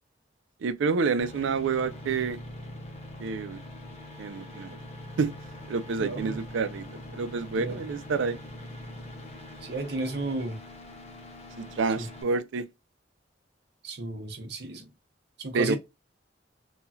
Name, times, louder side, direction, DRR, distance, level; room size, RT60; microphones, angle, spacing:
voice 1, 0.6-2.4 3.2-3.6 4.2-4.8 5.2-5.4 5.7-6.9 7.1-8.4 11.6-12.6 15.5-15.8, right 4 dB, 85° right, 0.4 m, -28 dB
sound 1, 1.2-12.2, left 1 dB, 35° left, 0.8 m, -43 dB
voice 2, 6.0-6.4 7.6-7.8 9.7-10.6 12.0-12.1 13.8-14.9 15.4-15.8, right 2 dB, 60° right, 0.8 m, -33 dB
3.0 x 2.3 x 2.6 m
head